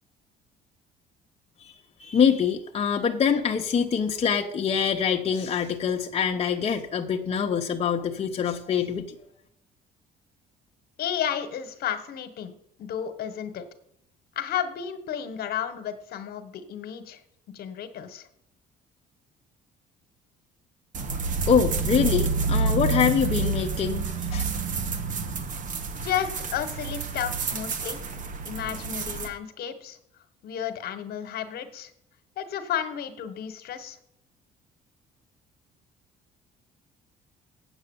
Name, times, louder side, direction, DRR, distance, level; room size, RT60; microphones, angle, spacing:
voice 1, 2.0-9.1 21.5-24.4, left 7 dB, 35° left, 2 dB, 0.9 m, -25 dB
voice 2, 11.0-12.5 12.8-13.6 14.3-17.2 17.5-18.3 26.0-28.0 28.5-30.0 30.4-31.9 32.4-34.0, left 9 dB, 65° left, 10 dB, 1.3 m, -32 dB
sound 1, 20.9-29.3, right 4 dB, 50° right, 1.3 m, -28 dB
8.0 x 7.7 x 7.1 m, 0.72 s
cardioid pair, 110°, 17 cm